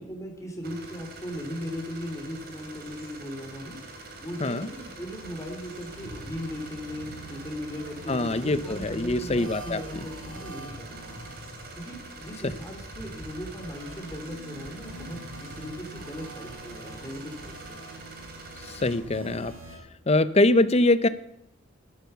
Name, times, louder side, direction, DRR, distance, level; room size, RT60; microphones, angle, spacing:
voice 1, 0.0-11.1 11.7-17.8, equal, 15° left, 2 dB, 3.4 m, -38 dB
sound 1, 0.6-19.0, right 3 dB, 50° right, 3.1 m, -45 dB
sound 2, 3.8-19.8, right 1 dB, 65° right, 6.3 m, -46 dB
sound 3, 5.8-7.2 8.0-8.2 8.5-9.7 10.3-12.0 12.5-13.9 14.3-14.4 14.7-15.9, left 1 dB, 5° right, 1.5 m, -47 dB
voice 2, 8.1-9.8 18.8-19.5 20.1-21.1, left 2 dB, 30° left, 15 dB, 0.7 m, -23 dB
13.0 x 12.0 x 6.9 m, 0.79 s
head